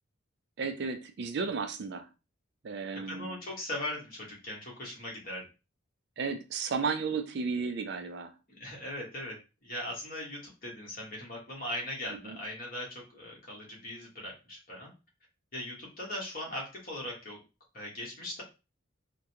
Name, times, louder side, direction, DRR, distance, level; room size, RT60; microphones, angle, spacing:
voice 1, 0.6-2.1 2.6-3.4 6.2-8.3 12.2-12.4, right 5 dB, 55° right, 7 dB, 0.4 m, -33 dB
voice 2, 2.9-5.4 8.5-9.3 9.6-14.9 15.5-17.4 17.7-18.4, left 1 dB, 45° left, -3 dB, 1.3 m, -39 dB
3.5 x 2.2 x 2.8 m, 0.29 s
head